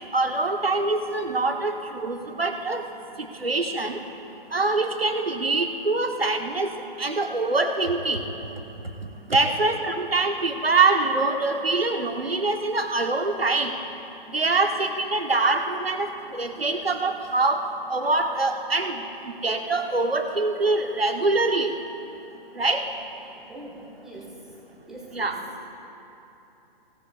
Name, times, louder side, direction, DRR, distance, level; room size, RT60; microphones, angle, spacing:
voice 1, 0.1-2.8 3.2-4.0 4.5-8.2 9.3-13.7 14.3-17.6 17.9-21.8 22.6-22.8 25.1-25.4, right 3 dB, 85° right, 5 dB, 1.1 m, -24 dB
voice 2, 9.4-10.0 23.3-24.4 24.9-25.4, right 1 dB, ahead, -5 dB, 1.5 m, -43 dB
17.5 x 16.5 x 2.3 m, 3.0 s
figure-of-eight pair, 130°, 29 cm